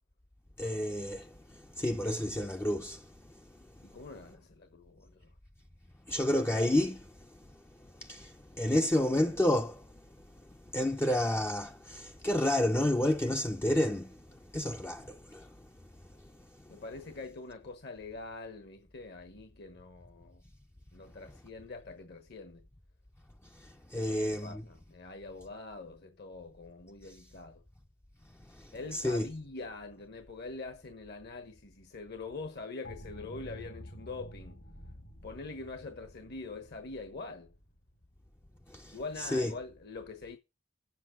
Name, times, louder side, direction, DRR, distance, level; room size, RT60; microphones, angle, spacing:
voice 1, 0.6-1.3 1.8-3.0 6.1-7.1 8.0-9.8 10.7-14.2 14.5-15.5 23.9-24.6 28.9-29.3 38.7-38.9 39.3-39.5, left 1 dB, 10° left, 0.5 m, -30 dB
voice 2, 3.8-5.3 16.7-20.4 20.9-22.6 23.9-27.6 28.7-34.6 35.2-37.5 38.9-40.4, left 3 dB, 55° left, 1.2 m, -44 dB
sound 1, 32.8-38.5, equal, 75° left, 2.6 m, -50 dB
7.5 x 7.2 x 7.5 m
head